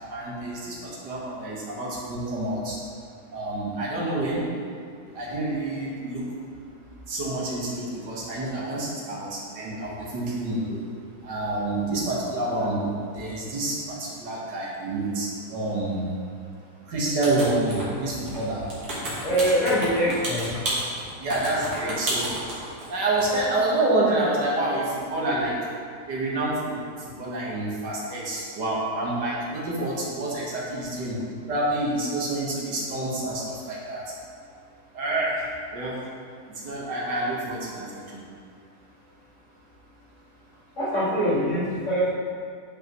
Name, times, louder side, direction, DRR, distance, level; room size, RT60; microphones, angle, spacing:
voice 1, 0.0-2.8 3.3-4.5 5.1-6.7 7.1-10.8 11.2-16.1 16.9-18.7 21.2-22.4 22.9-25.6 26.1-31.2 31.5-34.0 34.9-36.0 36.5-38.2, right 2 dB, 90° right, -5 dB, 2.1 m, -28 dB
sound 1, 17.2-18.0 18.3-22.9 23.2-23.4, right 1 dB, 65° right, 2.1 m, -31 dB
voice 2, 19.2-20.7 40.8-42.1, equal, 45° left, -8 dB, 2.1 m, -23 dB
9.3 x 5.4 x 3.1 m, 2.2 s
omnidirectional pair, 1.8 m